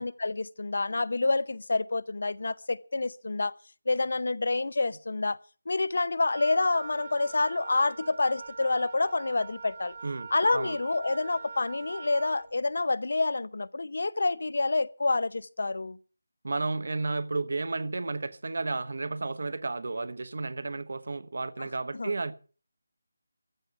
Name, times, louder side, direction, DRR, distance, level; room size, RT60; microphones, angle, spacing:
voice 1, 0.0-3.5 3.9-5.4 5.7-9.9 10.3-16.0 21.6-21.7 21.9-22.1, left 3 dB, 60° left, 0.7 m, -28 dB
Wind instrument woodwind instrument, 6.3-12.5, right 4 dB, 30° right, 1.1 m, -43 dB
voice 2, 16.4-22.3, right 3 dB, 55° right, 1.1 m, -32 dB
14.5 x 7.2 x 9.6 m
figure-of-eight pair, 175°, 0 cm